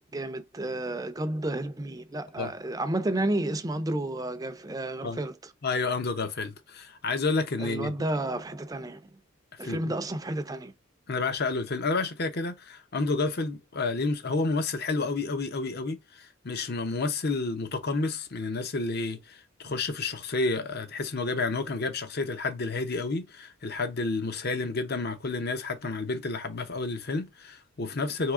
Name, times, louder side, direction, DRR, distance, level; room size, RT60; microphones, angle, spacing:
voice 1, 0.1-5.5 7.6-9.1 9.6-10.7, right 1 dB, 20° right, 0.5 m, -31 dB
voice 2, 5.6-7.9 9.6-9.9 11.1-28.3, left 3 dB, 50° left, 0.8 m, -30 dB
4.7 x 3.0 x 3.6 m
head